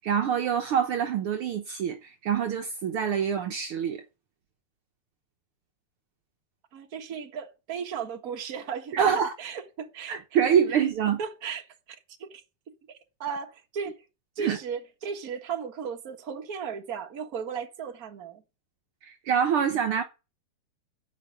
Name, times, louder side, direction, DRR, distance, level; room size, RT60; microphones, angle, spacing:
voice 1, 0.0-4.0 8.9-9.3 10.1-11.2 14.4-14.6 19.0-20.0, right 8 dB, 80° right, 1.2 m, -25 dB
voice 2, 6.7-10.2 11.2-12.4 13.2-13.9 14.4-18.4, right 6 dB, 45° right, 1.2 m, -35 dB
14.0 x 5.2 x 9.1 m
omnidirectional pair, 3.9 m